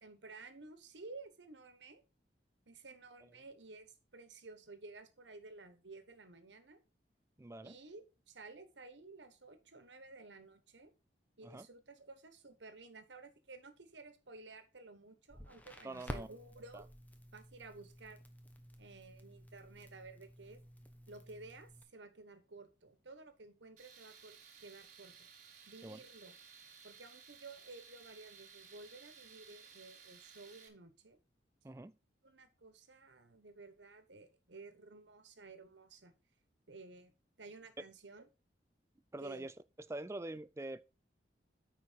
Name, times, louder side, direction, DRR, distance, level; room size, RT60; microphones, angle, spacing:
voice 1, 0.0-2.0 2.7-6.8 7.6-10.9 11.4-16.9 17.3-18.2 18.8-20.6 21.1-25.3 25.7-26.4 26.8-31.2 32.2-36.1 36.7-38.2 39.2-39.5, right 3 dB, 85° right, 1.3 m, -54 dB
voice 2, 7.4-7.8 11.4-11.7 15.8-16.3 16.7-16.9 25.8-26.0 31.6-31.9 39.1-39.5 39.9-40.8, right 2 dB, 15° right, 0.4 m, -44 dB
Crackle, 15.3-21.8, equal, 10° left, 0.9 m, -51 dB
Tools, 23.8-30.7, right 6 dB, 45° right, 1.6 m, -58 dB
9.3 x 4.6 x 4.5 m
head